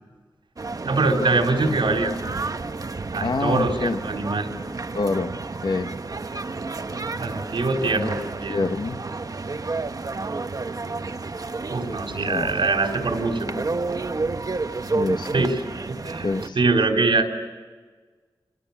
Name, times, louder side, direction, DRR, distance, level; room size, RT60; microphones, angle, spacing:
sound 1, 0.6-16.5, right 3 dB, 45° right, 1.2 m, -31 dB
voice 1, 0.9-2.2 3.1-4.5 7.2-8.7 11.7-13.5 15.3-15.6 15.9-16.3 16.5-17.3, right 3 dB, 80° right, 3 dB, 4.0 m, -23 dB
voice 2, 3.2-4.0 4.9-5.3 5.6-5.9 7.9-8.1 8.5-9.0 12.2-12.5 14.8-15.5 16.2-16.6, left 3 dB, 60° left, 8 dB, 1.4 m, -27 dB
29.5 x 27.5 x 7.3 m, 1.4 s
wide cardioid pair, 105°, 8 cm